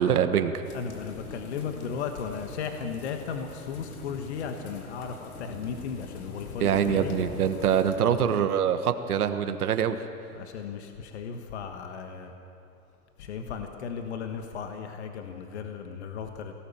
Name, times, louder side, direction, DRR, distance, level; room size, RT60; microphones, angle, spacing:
voice 1, 0.0-0.6 6.6-10.0, right 8 dB, 80° right, 8 dB, 1.4 m, -24 dB
sound 1, 0.6-8.0, left 4 dB, 75° left, 3.3 m, -43 dB
voice 2, 0.7-7.2 10.4-12.3 13.2-16.5, left 6 dB, 50° left, 5 dB, 1.5 m, -35 dB
23.5 x 18.0 x 7.2 m, 2.6 s
hypercardioid pair, 170°, 44 cm